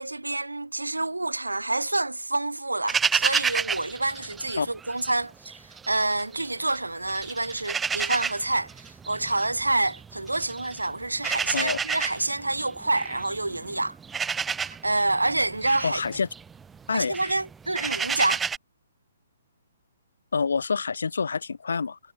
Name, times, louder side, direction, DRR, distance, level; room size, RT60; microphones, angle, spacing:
voice 1, 0.0-5.3 5.9-8.7 9.1-14.0 14.7-16.0 16.9-18.4, right 2 dB, 80° right, 5.3 m, -27 dB
sound 1, 2.9-5.1 5.5-6.8 7.1-18.6, right 6 dB, 10° right, 2.9 m, -30 dB
voice 2, 15.8-16.3 16.9-17.2 20.3-22.0, left 5 dB, 65° left, 5.8 m, -27 dB
figure-of-eight pair, 125°, 0 cm